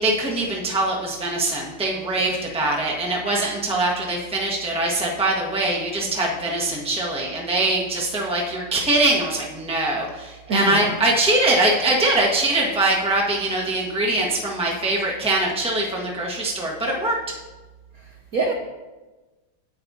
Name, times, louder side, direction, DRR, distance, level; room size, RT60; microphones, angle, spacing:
voice 1, 0.0-17.2, right 2 dB, 5° right, -3 dB, 1.0 m, -22 dB
voice 2, 10.5-10.9 18.0-18.5, right 3 dB, 60° right, 0 dB, 1.0 m, -25 dB
9.6 x 9.0 x 2.8 m, 1.2 s
omnidirectional pair, 2.4 m